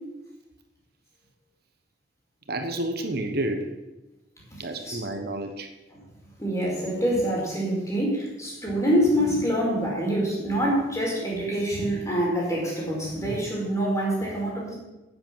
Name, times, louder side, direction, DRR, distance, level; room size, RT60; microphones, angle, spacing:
voice 1, 2.5-3.7 4.6-5.7, right 1 dB, 60° right, 5 dB, 1.3 m, -30 dB
voice 2, 4.5-5.0 6.4-14.7, equal, 20° left, -4 dB, 4.9 m, -26 dB
9.6 x 8.9 x 7.4 m, 1.0 s
head